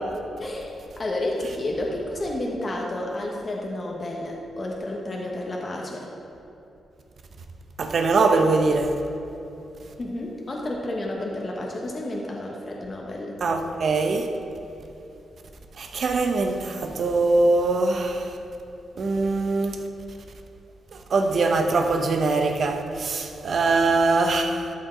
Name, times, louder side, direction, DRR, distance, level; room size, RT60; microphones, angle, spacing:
voice 1, 0.4-6.1 10.0-13.4 23.8-23.9, left 1 dB, 40° left, 1.1 m, -31 dB
voice 2, 7.8-8.9 13.4-14.3 15.8-18.3 19.0-19.8 21.1-24.7, right 3 dB, 60° right, 0.9 m, -22 dB
13.0 x 5.4 x 3.8 m
cardioid pair, 85°, 0 cm